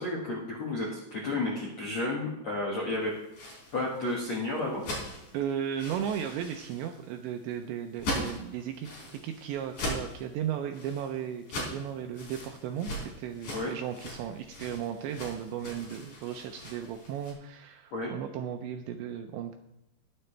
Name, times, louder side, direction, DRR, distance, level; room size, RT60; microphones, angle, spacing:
voice 1, 0.0-3.1 3.7-4.8 13.5-13.7 17.9-18.1, left 2 dB, 65° left, -3 dB, 1.7 m, -32 dB
sound 1, 3.1-17.3, left 1 dB, 40° left, 4.6 m, -40 dB
voice 2, 5.3-8.9 9.2-19.5, right 9 dB, 80° right, 5 dB, 2.6 m, -35 dB
20.0 x 7.9 x 3.3 m, 0.88 s
omnidirectional pair, 5.8 m